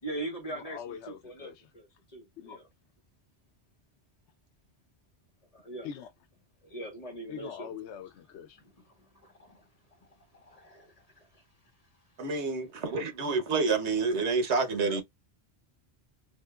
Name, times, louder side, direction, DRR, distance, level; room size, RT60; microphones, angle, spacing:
voice 1, 0.0-2.7 5.5-5.9 6.6-7.7 9.0-9.7 10.0-11.4, right 2 dB, 35° left, 1.4 m, -42 dB
voice 2, 0.6-1.6 2.4-2.6 5.8-6.1 7.3-8.6 14.7-15.0, left 8 dB, 80° left, 0.9 m, -42 dB
voice 3, 12.2-15.0, right 4 dB, 85° right, 1.2 m, -28 dB
4.2 x 2.7 x 2.3 m
omnidirectional pair, 1.1 m